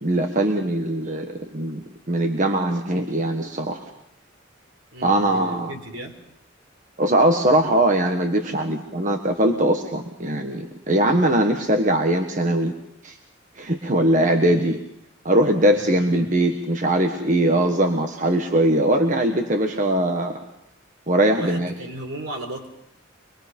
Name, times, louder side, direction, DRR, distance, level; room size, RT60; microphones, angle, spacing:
voice 1, 0.0-3.9 5.0-5.7 7.0-12.7 13.0-13.2 13.6-14.8 15.2-20.4 21.1-21.7, right 1 dB, 40° right, 4 dB, 1.4 m, -21 dB
voice 2, 4.9-6.2 14.4-14.5 15.7-16.3 21.2-22.7, right 1 dB, 75° right, 3 dB, 4.0 m, -36 dB
25.5 x 21.0 x 5.4 m, 0.75 s
head